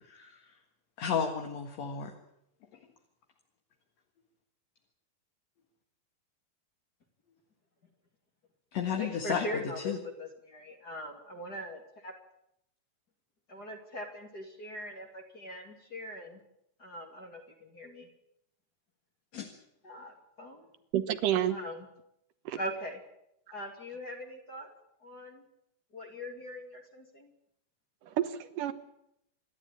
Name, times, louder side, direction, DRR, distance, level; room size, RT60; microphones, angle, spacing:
voice 1, 0.1-0.4 1.0-2.1 8.7-10.0 19.3-19.5, left 7 dB, 55° left, 4 dB, 2.6 m, -33 dB
voice 2, 9.0-9.9 10.2-12.1 13.5-16.4 16.8-18.1 19.8-20.7 21.5-21.9 22.5-23.0 23.5-24.7 25.0-25.4 25.9-27.3, equal, 30° left, 2 dB, 2.5 m, -41 dB
voice 3, 20.9-21.6 22.5-22.6 28.1-28.7, right 11 dB, 70° right, 11 dB, 2.5 m, -29 dB
27.5 x 12.0 x 8.7 m, 0.79 s
omnidirectional pair, 4.1 m